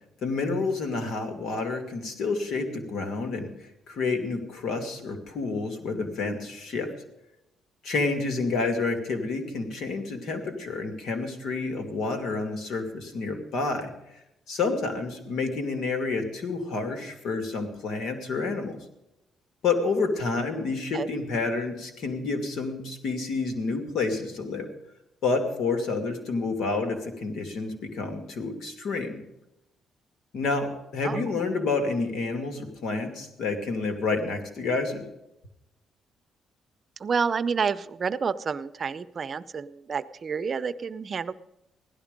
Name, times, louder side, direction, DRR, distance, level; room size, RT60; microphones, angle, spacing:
voice 1, 0.2-6.9 7.8-13.9 14.5-18.8 19.6-24.7 25.2-29.2 30.3-35.0, left 3 dB, 75° left, 6 dB, 2.5 m, -29 dB
voice 2, 37.0-41.3, right 6 dB, 45° right, 14 dB, 0.6 m, -29 dB
16.0 x 12.0 x 5.2 m, 0.90 s
cardioid pair, 90°, 0 cm